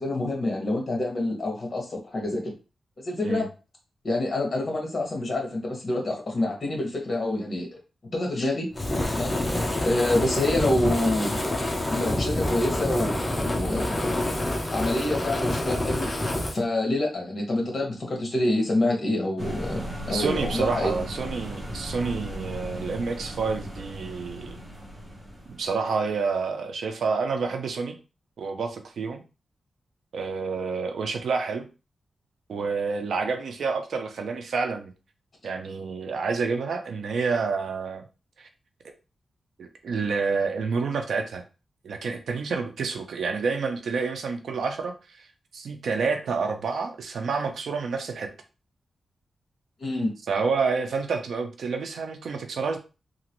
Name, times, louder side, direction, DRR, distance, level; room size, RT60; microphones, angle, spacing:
voice 1, 0.0-2.5 3.0-3.5 4.0-7.7 8.1-8.7 9.1-9.4 9.8-11.6 11.9-13.2 13.5-14.0 14.7-16.1 16.5-19.8 20.1-20.9 49.8-50.1, left 1 dB, 40° left, 0 dB, 1.2 m, -27 dB
Fire, 8.7-16.6, left 1 dB, 20° left, 0.6 m, -27 dB
sound 1, 19.4-25.8, equal, 20° right, 1.0 m, -36 dB
voice 2, 20.1-24.6 25.6-28.0 28.4-29.2 30.1-31.7 32.5-34.9 35.4-38.0 38.4-38.5 39.6-41.4 41.8-45.3 45.5-48.3 50.3-52.8, right 4 dB, 85° right, 6 dB, 0.5 m, -28 dB
2.9 x 2.5 x 3.0 m, 0.32 s
wide cardioid pair, 110°, 0 cm